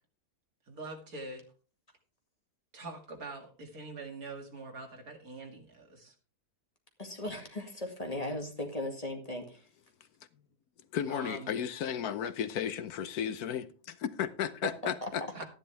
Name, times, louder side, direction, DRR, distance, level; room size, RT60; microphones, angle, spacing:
voice 1, 0.7-1.4 2.7-6.1 11.1-11.6 15.3-15.5, right 3 dB, 65° right, 2.7 m, -44 dB
voice 2, 7.0-9.6 15.0-15.1, left 1 dB, 25° left, 2.1 m, -37 dB
voice 3, 10.9-15.4, left 9 dB, 75° left, 1.2 m, -34 dB
12.5 x 10.5 x 3.3 m
omnidirectional pair, 1.6 m